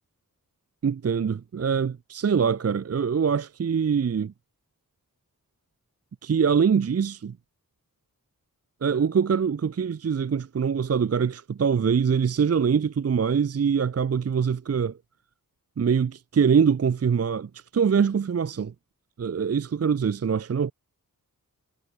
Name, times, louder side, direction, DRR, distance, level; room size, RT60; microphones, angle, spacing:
voice 1, 0.8-4.3 6.2-7.3 8.8-15.0 15.8-18.7 19.2-20.7, right 6 dB, 45° right, 0.5 m, -24 dB
wide cardioid pair, 55°, 35 cm